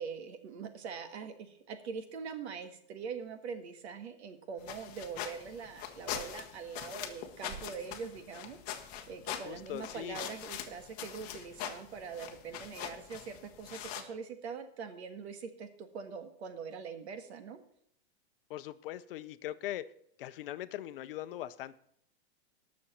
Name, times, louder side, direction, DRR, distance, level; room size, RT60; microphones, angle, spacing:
voice 1, 0.0-17.6, right 6 dB, 80° right, 8 dB, 1.8 m, -43 dB
sound 1, 4.6-14.0, left 10 dB, 25° left, 0.9 m, -43 dB
sound 2, 6.0-6.5 7.4-7.9 8.7-9.2 9.9-10.1 10.4-10.6 11.2-11.4 12.6-12.8, right 6 dB, 25° right, 0.5 m, -53 dB
voice 2, 9.4-10.2 18.5-19.9 20.2-21.8, left 13 dB, 55° left, 13 dB, 0.7 m, -40 dB
18.5 x 6.4 x 4.3 m, 0.70 s
supercardioid pair, 170°, 32 cm